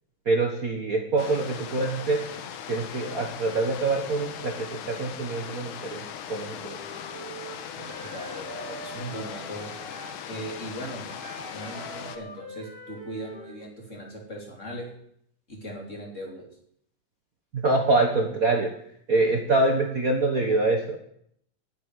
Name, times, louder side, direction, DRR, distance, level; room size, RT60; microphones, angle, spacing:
voice 1, 0.2-2.2 2.7-6.8 7.8-7.9 17.5-18.7 19.1-21.0, right 2 dB, 70° right, 2 dB, 0.8 m, -25 dB
sound 1, 1.2-12.2, left 8 dB, 70° left, 2.4 m, -39 dB
Wind instrument woodwind instrument, 6.6-10.2 11.0-13.6, right 2 dB, 40° right, 0.9 m, -43 dB
voice 2, 8.0-9.7 10.3-11.1 11.5-14.9 15.5-16.4, right 1 dB, 20° left, 0 dB, 3.3 m, -38 dB
12.0 x 8.4 x 10.0 m, 0.71 s
omnidirectional pair, 3.9 m